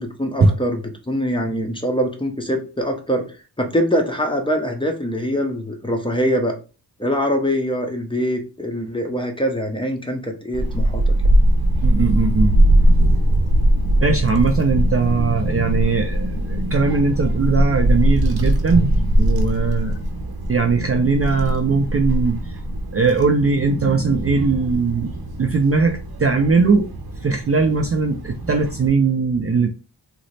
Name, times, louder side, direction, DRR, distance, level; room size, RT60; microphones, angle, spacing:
voice 1, 0.0-3.3 3.6-6.5 7.0-11.1, equal, 10° left, 3 dB, 0.7 m, -23 dB
Child speech kid speaking / Wind, 10.5-28.9, right 1 dB, 55° right, 0.7 m, -21 dB
voice 2, 11.8-12.5 14.0-20.0 20.5-22.6 22.9-25.1 25.4-26.9 27.2-29.7, right 4 dB, 35° right, 4 dB, 0.4 m, -19 dB
3.1 x 2.0 x 4.0 m, 0.33 s
wide cardioid pair, 80°, 43 cm